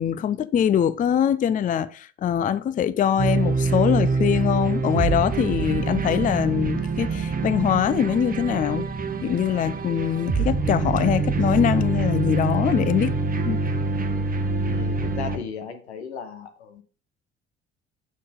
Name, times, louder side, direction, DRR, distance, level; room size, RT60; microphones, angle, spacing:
voice 1, 0.0-8.9 9.2-13.1 13.4-13.6, left 9 dB, 25° left, 0.4 m, -23 dB
sound 1, 3.2-15.4, right 4 dB, 25° right, 1.0 m, -25 dB
voice 2, 14.6-16.8, left 6 dB, 85° left, 1.0 m, -36 dB
7.6 x 6.1 x 3.6 m
figure-of-eight pair, 50°, 32 cm